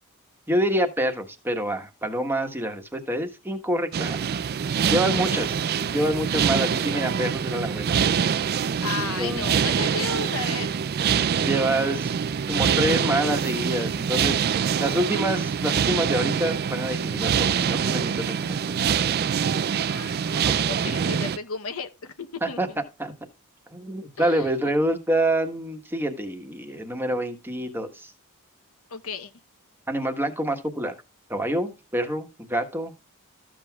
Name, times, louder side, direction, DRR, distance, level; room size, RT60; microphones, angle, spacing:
voice 1, 0.5-4.2 4.8-5.6 5.9-8.0 8.9-9.5 11.4-12.1 12.5-14.3 14.8-19.0 20.4-21.0 22.4-23.1 23.7-28.1 29.9-30.9 31.3-33.0, right 1 dB, 10° right, 1.3 m, -27 dB
sound 1, 3.9-21.4, right 7 dB, 45° right, 0.4 m, -25 dB
voice 2, 8.8-10.7 19.9-22.6 24.2-24.7 28.9-29.3, left 5 dB, 65° left, 0.9 m, -34 dB
13.5 x 7.6 x 2.4 m
head